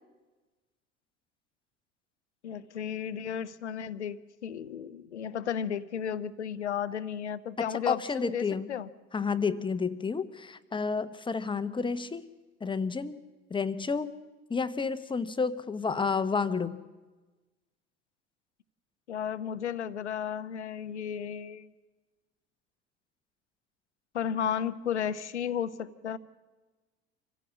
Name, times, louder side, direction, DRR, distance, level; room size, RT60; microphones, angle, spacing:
voice 1, 2.4-8.9 19.1-21.7 24.1-26.2, left 8 dB, 75° left, 15 dB, 0.8 m, -34 dB
voice 2, 7.6-8.7 9.1-12.3 12.6-13.2 13.5-14.2 14.5-16.8, left 5 dB, 15° left, 13 dB, 0.9 m, -30 dB
26.0 x 15.5 x 7.6 m, 1.2 s
figure-of-eight pair, 65°, 34 cm